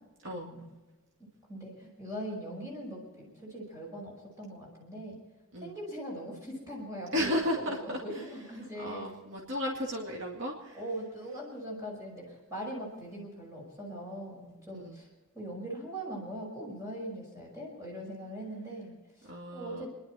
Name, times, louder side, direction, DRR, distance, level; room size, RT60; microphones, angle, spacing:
voice 1, 0.3-0.7 1.5-5.2 5.6-9.1 10.7-15.1 15.3-19.9, right 1 dB, 15° right, -3 dB, 5.6 m, -41 dB
voice 2, 7.1-8.0 8.8-10.8 14.7-15.0 19.3-19.9, left 1 dB, 60° right, -2 dB, 2.3 m, -34 dB
28.0 x 11.5 x 4.4 m, 1.2 s
head